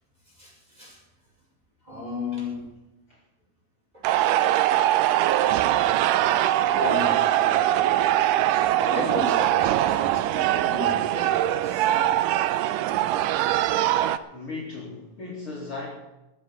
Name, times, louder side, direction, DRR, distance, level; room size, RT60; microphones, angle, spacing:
voice 1, 0.3-1.0 1.8-2.6 3.9-4.0 6.7-8.0 8.3-12.2, left 2 dB, 10° right, -4 dB, 5.9 m, -34 dB
sound 1, 4.0-14.2, right 13 dB, 80° right, 2.2 m, -22 dB
voice 2, 14.3-15.9, left 3 dB, 40° left, -4 dB, 3.1 m, -36 dB
19.0 x 7.6 x 7.1 m, 0.98 s
omnidirectional pair, 3.9 m